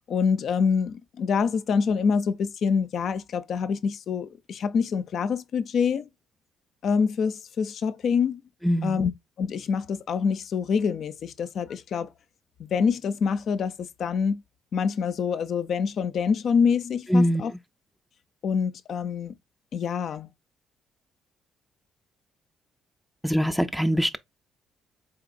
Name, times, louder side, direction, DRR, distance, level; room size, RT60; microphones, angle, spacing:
voice 1, 0.1-6.1 6.8-8.4 8.8-9.1 9.4-12.1 12.6-14.4 14.7-17.5 18.4-19.4 19.7-20.3, left 6 dB, 60° left, 0.4 m, -26 dB
voice 2, 8.6-9.0 17.1-17.5 23.2-24.2, equal, ahead, 0.4 m, -22 dB
3.9 x 3.8 x 2.5 m
cardioid pair, 90°, 0 cm